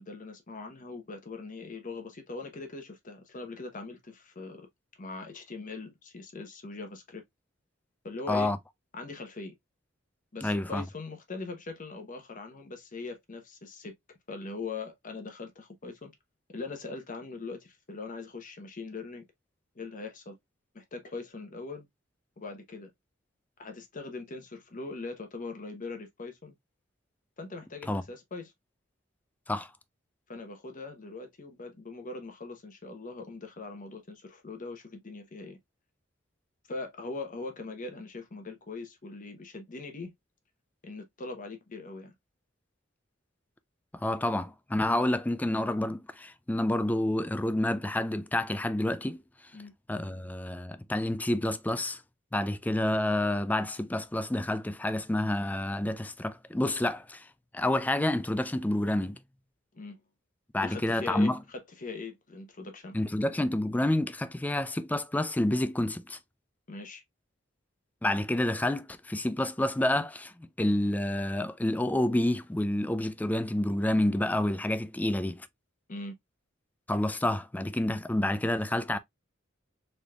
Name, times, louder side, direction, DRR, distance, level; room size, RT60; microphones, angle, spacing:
voice 1, 0.0-4.7 5.0-7.2 8.0-8.5 8.9-9.5 10.3-13.9 14.3-16.1 16.5-19.2 19.7-20.4 20.7-21.9 22.4-22.9 23.6-26.6 27.4-28.5 30.3-35.6 36.7-40.1 40.8-42.1 49.5-49.7 59.7-60.0 60.6-63.0 66.7-67.0 75.9-76.1, left 3 dB, 40° left, 0.9 m, -41 dB
voice 2, 10.4-10.8 27.9-28.0 29.5-29.7 43.9-49.2 49.9-52.0 52.3-57.3 57.5-59.2 60.5-61.4 62.9-66.2 68.0-75.5 76.9-79.0, left 1 dB, 10° left, 0.3 m, -29 dB
4.0 x 3.3 x 2.3 m
head